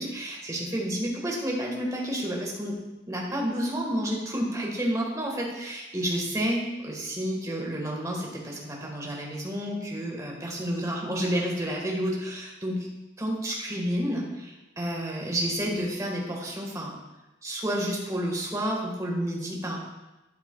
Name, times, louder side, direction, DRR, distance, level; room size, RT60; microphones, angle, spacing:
voice 1, 0.0-2.8 3.1-12.9 13.2-16.9 17.4-19.8, equal, 15° right, -2 dB, 1.5 m, -30 dB
12.0 x 8.3 x 2.3 m, 1.0 s
head